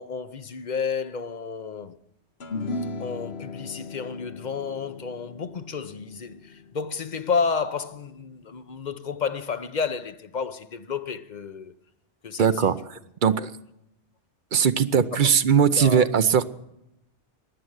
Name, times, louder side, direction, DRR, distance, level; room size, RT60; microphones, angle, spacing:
voice 1, 0.0-2.0 3.0-11.8 12.2-12.7 13.4-13.5 15.1-15.3 15.7-16.1, left 5 dB, 45° left, 0.8 m, -31 dB
sound 1, 2.4-8.9, left 3 dB, 60° left, 1.3 m, -38 dB
voice 2, 12.4-12.7 13.2-13.5 14.5-16.4, right 7 dB, 50° right, 0.7 m, -19 dB
15.5 x 10.0 x 7.9 m
omnidirectional pair, 1.2 m